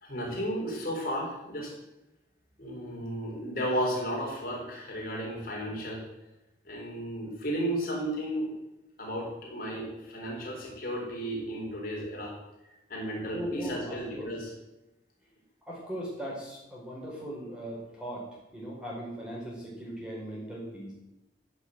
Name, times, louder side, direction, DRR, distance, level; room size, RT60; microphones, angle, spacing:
voice 1, 0.0-1.7 2.6-6.0 6.7-8.5 9.0-12.3 12.9-14.5, equal, 50° left, -2 dB, 4.3 m, -33 dB
voice 2, 13.3-14.3 15.7-20.9, equal, 5° right, -5 dB, 5.0 m, -39 dB
15.0 x 7.2 x 8.0 m, 0.95 s
head